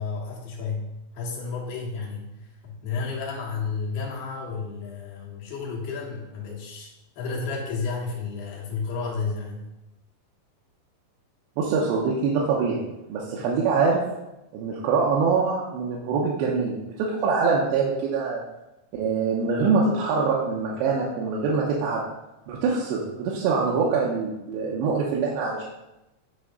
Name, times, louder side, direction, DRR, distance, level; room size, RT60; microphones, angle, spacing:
voice 1, 0.0-6.9 7.2-9.6, left 4 dB, 65° left, -2 dB, 3.0 m, -32 dB
voice 2, 11.6-12.8 13.1-14.0 14.5-18.4 18.9-22.0 22.5-25.6, right 4 dB, 80° right, -4 dB, 3.0 m, -24 dB
9.9 x 3.4 x 5.2 m, 0.92 s
omnidirectional pair, 5.2 m